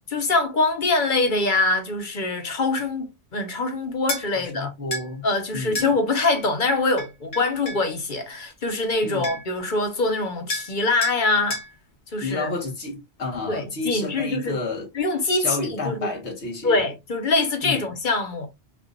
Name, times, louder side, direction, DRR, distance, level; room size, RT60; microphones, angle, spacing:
voice 1, 0.1-3.1 3.3-4.7 5.2-11.6 12.1-12.5 13.5-14.6 14.9-16.1 16.6-18.5, left 3 dB, 50° left, 1.2 m, -24 dB
sound 1, 4.1-4.3 4.9-5.1 5.7-5.9 7.0-7.8 8.9-9.0 9.2-9.6 10.5-10.7 11.0-11.2 11.5-11.7, left 2 dB, 65° left, 1.4 m, -30 dB
voice 2, 4.3-5.2 5.5-5.9 9.0-9.3 12.2-14.9 15.4-16.9 17.6-17.9, left 3 dB, 85° left, 1.8 m, -30 dB
5.8 x 2.5 x 2.5 m
omnidirectional pair, 1.1 m